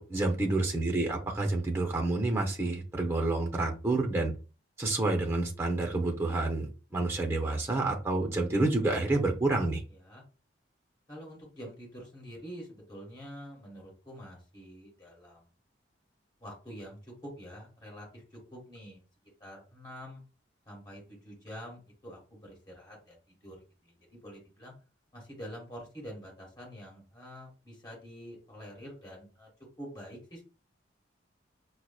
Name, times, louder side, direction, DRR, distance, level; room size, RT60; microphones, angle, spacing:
voice 1, 0.1-4.3 4.8-9.8, right 2 dB, 15° right, 3 dB, 0.6 m, -29 dB
voice 2, 9.9-10.2 11.1-15.5 16.4-19.0 19.4-20.2 20.6-23.1 23.4-23.6 23.8-24.7 25.1-29.5 29.8-30.4, equal, 20° left, -2 dB, 1.5 m, -46 dB
4.6 x 2.0 x 2.3 m, 0.33 s
head